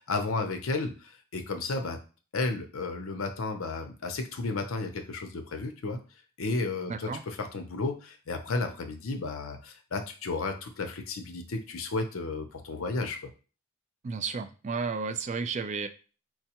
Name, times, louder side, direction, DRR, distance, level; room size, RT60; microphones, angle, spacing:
voice 1, 0.1-2.0 2.3-6.0 6.4-13.2, left 3 dB, 65° left, 5 dB, 0.6 m, -33 dB
voice 2, 6.9-7.2 14.0-15.9, right 5 dB, 35° right, 9 dB, 0.3 m, -32 dB
4.6 x 2.2 x 2.9 m, 0.36 s
head